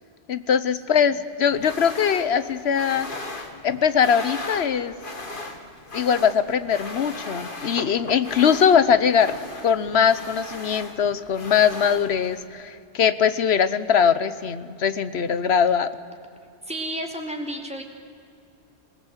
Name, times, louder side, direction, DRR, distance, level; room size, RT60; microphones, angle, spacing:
voice 1, 0.3-3.1 3.6-4.9 5.9-9.3 9.6-15.9, left 7 dB, 75° left, 14 dB, 1.1 m, -21 dB
sound 1, 1.5-12.5, left 2 dB, 50° left, 2.1 m, -38 dB
voice 2, 16.6-17.8, right 1 dB, 5° right, 2 dB, 2.5 m, -32 dB
26.5 x 18.0 x 8.2 m, 2.4 s
omnidirectional pair, 1.1 m